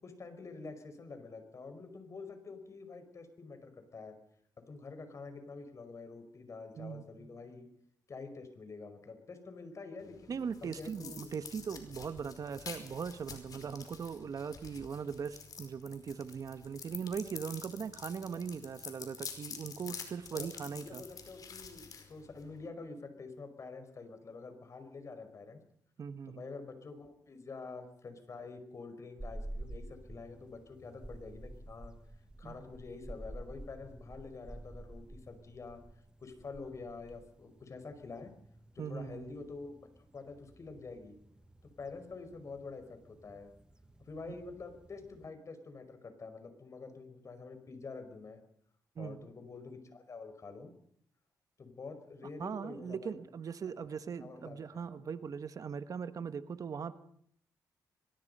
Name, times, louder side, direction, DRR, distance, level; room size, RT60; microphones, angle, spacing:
voice 1, 0.0-4.2 4.7-7.7 8.1-11.3 20.3-25.6 26.3-31.9 32.4-35.8 36.2-38.3 38.7-41.2 41.8-43.5 44.0-48.4 49.0-50.7 51.6-53.1 53.7-55.0, left 4 dB, 45° left, 9 dB, 5.1 m, -47 dB
voice 2, 6.8-7.1 10.3-21.0 26.0-26.4 32.4-32.6 38.8-39.3 49.0-49.3 52.4-57.0, right 6 dB, 55° right, 11 dB, 1.4 m, -40 dB
sound 1, 10.0-22.7, left 6 dB, 60° left, 5.1 m, -48 dB
sound 2, 29.2-45.3, right 1 dB, 10° right, 1.5 m, -50 dB
23.5 x 21.5 x 5.6 m, 0.65 s
cardioid pair, 95°, 7 cm